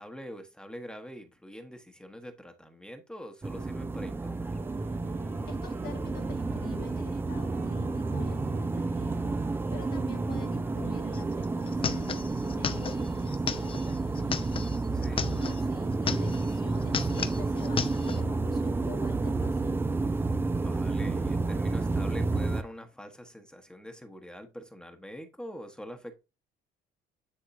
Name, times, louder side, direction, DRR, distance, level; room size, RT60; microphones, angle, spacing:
voice 1, 0.0-4.6 14.9-15.3 20.4-26.1, equal, 5° left, 1.1 m, -44 dB
sound 1, 3.4-22.6, right 3 dB, 15° right, 0.4 m, -30 dB
Wind instrument woodwind instrument, 4.5-12.1, right 6 dB, 45° right, 1.0 m, -49 dB
voice 2, 5.5-14.6 15.1-20.0, left 7 dB, 65° left, 1.6 m, -46 dB
sound 2, 11.1-11.2 11.4-15.6 15.9-16.5 16.8-18.2, left 6 dB, 30° left, 0.7 m, -34 dB
10.0 x 3.6 x 2.6 m
cardioid pair, 110°, 17 cm